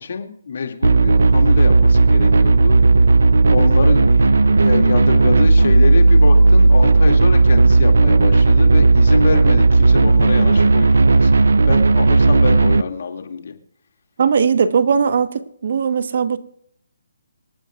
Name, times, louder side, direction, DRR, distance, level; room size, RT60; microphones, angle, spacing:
voice 1, 0.0-2.8 3.5-11.3 11.7-13.5, left 5 dB, 60° left, 2.3 m, -26 dB
sound 1, 0.8-12.8, right 3 dB, 85° right, 0.6 m, -13 dB
voice 2, 14.2-16.4, right 6 dB, 55° right, 1.2 m, -18 dB
26.0 x 9.0 x 2.4 m
hypercardioid pair, 160°, 0 cm